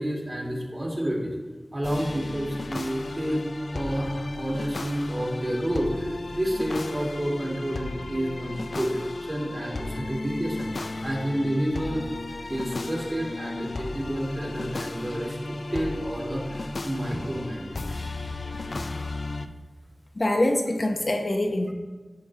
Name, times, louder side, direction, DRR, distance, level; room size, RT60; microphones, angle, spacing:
voice 1, 0.0-1.3 1.7-3.5 3.7-9.0 9.3-12.0 12.5-18.0, equal, 35° right, -2 dB, 2.3 m, -29 dB
sound 1, 1.8-19.5, left 2 dB, 80° left, 0.4 m, -35 dB
voice 2, 20.1-21.7, left 1 dB, 50° left, 2 dB, 0.8 m, -24 dB
10.5 x 5.4 x 3.2 m, 1.4 s
wide cardioid pair, 55°, 0 cm